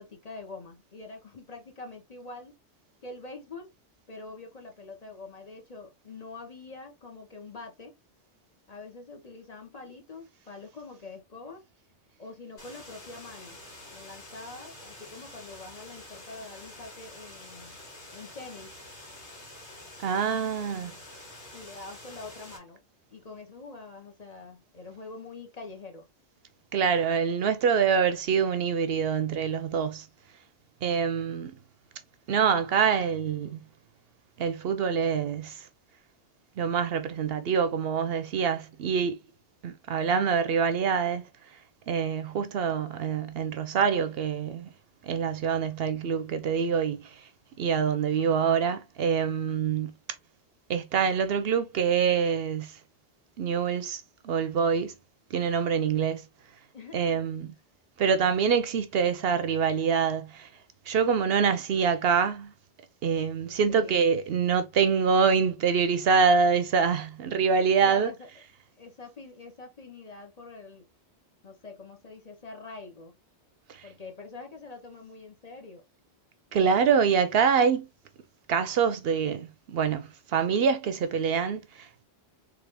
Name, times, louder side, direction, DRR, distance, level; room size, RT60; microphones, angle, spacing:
voice 1, 0.0-2.5 3.0-3.7 4.1-7.9 8.7-11.7 12.2-13.6 13.9-17.8 18.1-18.7 21.5-22.8 23.1-26.0 56.7-57.3 63.4-64.0 67.8-68.3 68.8-70.9 71.4-73.1 73.8-75.8, left 3 dB, 40° left, 0.9 m, -45 dB
sound 1, 12.6-22.6, left 1 dB, 90° left, 2.4 m, -47 dB
voice 2, 20.0-20.9 26.7-30.0 30.8-31.5 32.3-33.6 34.4-35.7 36.6-39.2 39.6-41.2 41.9-44.7 45.0-47.0 47.6-49.9 50.7-52.7 53.4-54.9 55.3-56.2 56.9-57.5 58.0-60.5 60.9-62.5 63.0-68.1 76.5-77.9 78.5-82.0, right 6 dB, 65° right, 0.8 m, -25 dB
3.7 x 3.2 x 3.3 m
omnidirectional pair, 1.1 m